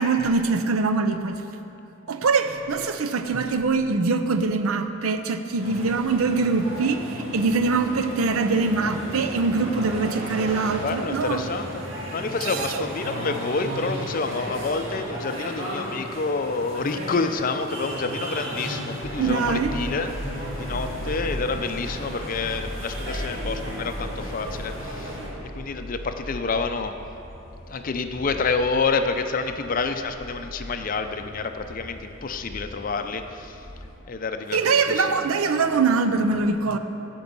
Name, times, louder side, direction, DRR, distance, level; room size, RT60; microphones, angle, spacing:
voice 1, 0.0-1.4 2.1-11.4 12.4-12.8 19.2-19.8 34.5-36.8, right 4 dB, 90° right, 9 dB, 0.6 m, -23 dB
sound 1, 5.6-25.3, equal, 65° right, 1.9 m, -34 dB
voice 2, 10.8-11.8 12.1-20.1 20.6-25.2 25.5-27.0 27.7-33.6 34.1-35.2, left 4 dB, 40° left, 8 dB, 0.5 m, -28 dB
sound 2, 19.0-34.0, equal, 45° right, 1.4 m, -38 dB
13.0 x 5.3 x 5.3 m, 2.9 s
head